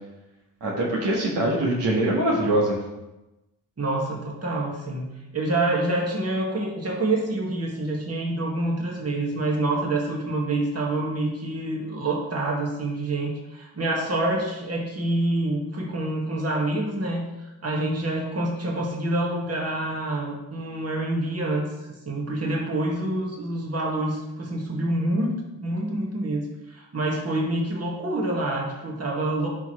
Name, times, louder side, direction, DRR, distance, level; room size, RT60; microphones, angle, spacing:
voice 1, 0.6-2.8, right 1 dB, 70° right, -2 dB, 1.8 m, -23 dB
voice 2, 3.8-5.1 5.3-17.3 17.6-21.7 22.1-29.5, right 2 dB, 35° right, -1 dB, 1.9 m, -27 dB
10.5 x 4.6 x 3.2 m, 1.0 s
supercardioid pair, 60°, 43 cm